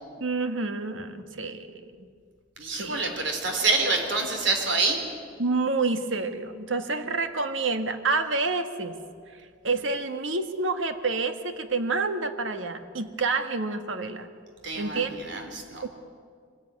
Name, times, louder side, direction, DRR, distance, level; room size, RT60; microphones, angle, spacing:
voice 1, 0.2-2.1 2.6-3.0 5.4-9.0 9.6-14.3 14.7-15.2 15.8-15.9, right 3 dB, 85° right, 8 dB, 1.6 m, -28 dB
voice 2, 2.6-5.0 14.6-15.9, right 3 dB, 65° right, 4 dB, 3.9 m, -27 dB
24.0 x 16.5 x 9.5 m, 2.1 s
head